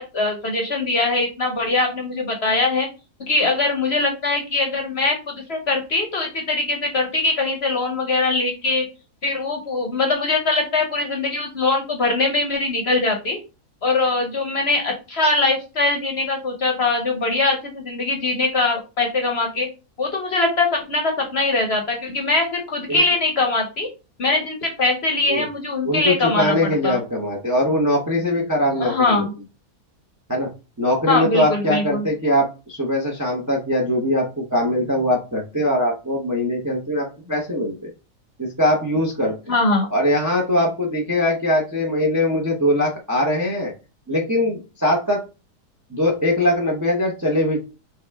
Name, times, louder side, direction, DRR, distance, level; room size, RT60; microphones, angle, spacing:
voice 1, 0.0-2.9 3.2-8.8 9.2-13.4 13.8-19.7 20.0-23.9 24.2-26.6 26.8-27.0 28.8-29.3 31.1-32.0 39.5-39.9, left 3 dB, 50° left, 3 dB, 1.0 m, -22 dB
voice 2, 25.8-29.3 30.3-30.5 30.8-37.9 38.4-39.3 39.9-43.7 44.1-45.2 45.9-47.6, left 1 dB, 15° right, 0 dB, 0.6 m, -21 dB
5.8 x 2.5 x 3.4 m, 0.30 s
omnidirectional pair, 1.7 m